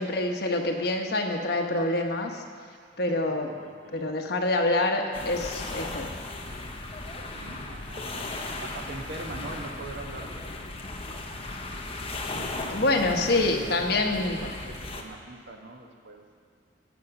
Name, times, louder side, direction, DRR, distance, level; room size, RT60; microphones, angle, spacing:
voice 1, 0.0-2.4 3.0-3.5 3.9-6.1 12.7-14.4, left 2 dB, 60° left, 2 dB, 1.2 m, -26 dB
voice 2, 2.7-4.3 7.3-10.3 12.3-16.2, right 2 dB, 70° right, 2 dB, 1.4 m, -42 dB
sound 1, 5.1-15.0, left 2 dB, 30° left, 1.0 m, -36 dB
15.5 x 6.4 x 5.9 m, 2.2 s
head